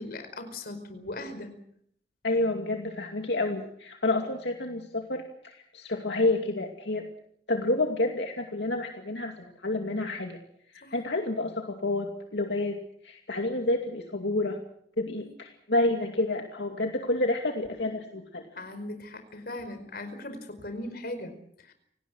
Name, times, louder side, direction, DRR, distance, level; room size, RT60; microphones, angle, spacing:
voice 1, 0.0-1.5 10.8-10.9 15.2-15.3 18.5-21.4 21.6-21.7, left 1 dB, 60° left, 9 dB, 4.8 m, -39 dB
voice 2, 2.2-7.0 7.5-10.4 10.7-12.8 13.0-14.6 15.0-18.5, left 2 dB, 75° left, 3 dB, 2.5 m, -29 dB
28.5 x 18.5 x 6.3 m, 0.69 s
head